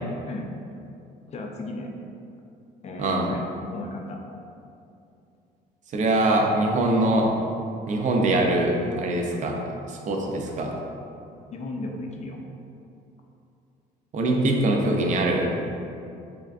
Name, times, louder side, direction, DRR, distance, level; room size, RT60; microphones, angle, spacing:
voice 1, 1.3-1.9 2.8-3.4 3.7-4.2 11.5-12.4, left 2 dB, 40° left, 2 dB, 0.4 m, -35 dB
voice 2, 5.9-7.3 7.9-9.6 9.9-10.7 14.1-15.5, right 2 dB, 45° right, 1 dB, 0.5 m, -23 dB
3.5 x 3.3 x 2.4 m, 2.6 s
cardioid pair, 110°, 17 cm